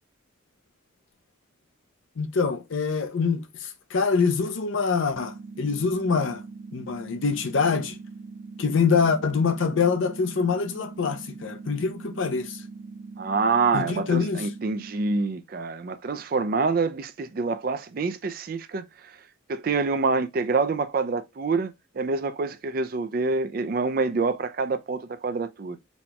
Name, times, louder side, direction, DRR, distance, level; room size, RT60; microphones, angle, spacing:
voice 1, 2.2-6.4 6.7-8.0 8.6-12.6 13.7-14.4, left 5 dB, 75° left, 0.5 m, -25 dB
sound 1, 5.1-15.1, right 4 dB, 75° right, 1.3 m, -42 dB
voice 2, 13.2-19.2 19.5-25.8, right 4 dB, 45° right, 0.3 m, -26 dB
4.2 x 2.2 x 2.8 m
head